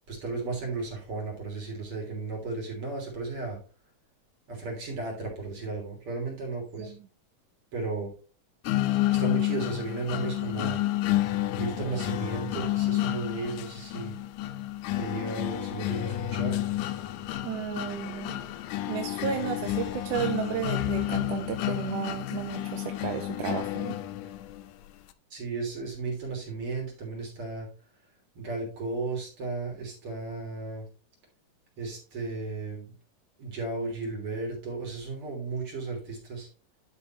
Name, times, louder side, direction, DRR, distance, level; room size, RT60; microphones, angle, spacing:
voice 1, 0.1-3.6 4.5-6.9 7.7-8.1 9.1-10.8 11.2-14.2 15.0-16.6 25.3-27.7 28.3-30.9 31.8-32.9 33.4-36.5, right 3 dB, 40° right, -1 dB, 3.8 m, -34 dB
sound 1, 8.7-24.6, left 14 dB, 80° left, 1.9 m, -30 dB
voice 2, 17.4-18.4 18.9-24.0, right 10 dB, 80° right, 6 dB, 2.1 m, -33 dB
11.5 x 5.4 x 3.0 m, 0.37 s
omnidirectional pair, 3.9 m